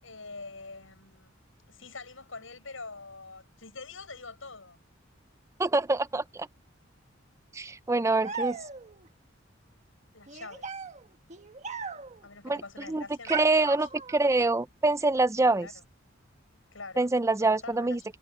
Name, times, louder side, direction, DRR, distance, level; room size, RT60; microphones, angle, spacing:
voice 1, 0.0-1.3 1.7-4.8 10.1-10.7 12.2-13.9 15.6-15.7 16.7-17.1 17.4-17.9, left 3 dB, 85° left, 7.7 m, -45 dB
voice 2, 5.6-6.5 7.5-8.6 12.4-12.6 12.9-13.0 13.3-13.9 14.1-15.7 17.0-18.2, right 2 dB, 15° right, 0.5 m, -25 dB
sound 1, 8.2-9.1 10.3-12.3 13.3-14.4, right 5 dB, 40° right, 1.4 m, -38 dB
head